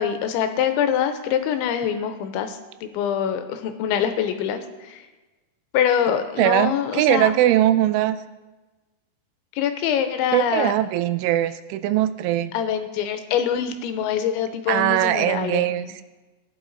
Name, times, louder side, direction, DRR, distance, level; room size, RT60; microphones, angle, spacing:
voice 1, 0.0-5.0 5.7-7.3 9.5-10.7 12.5-15.9, left 9 dB, 80° left, 8 dB, 2.9 m, -24 dB
voice 2, 6.4-8.2 10.3-12.5 14.7-16.0, right 13 dB, 85° right, 12 dB, 3.0 m, -21 dB
15.0 x 11.0 x 3.9 m, 1.2 s
omnidirectional pair, 5.6 m